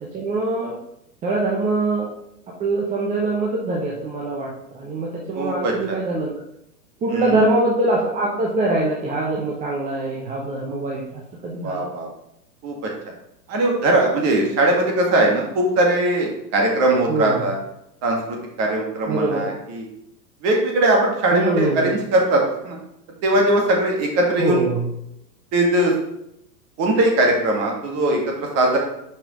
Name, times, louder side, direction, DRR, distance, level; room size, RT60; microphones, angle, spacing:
voice 1, 0.1-0.8 1.2-2.1 2.6-6.4 7.0-11.9 17.1-17.4 19.1-19.6 21.3-21.9 24.4-24.8, right 2 dB, 15° right, -2 dB, 0.8 m, -23 dB
voice 2, 5.4-6.0 7.1-7.4 11.6-12.1 12.6-12.9 13.5-17.5 18.0-19.9 20.4-22.8 23.2-24.6 25.5-25.9 26.8-28.8, right 1 dB, 30° right, 0 dB, 2.0 m, -20 dB
5.4 x 5.3 x 5.0 m, 0.80 s
figure-of-eight pair, 110°, 50 cm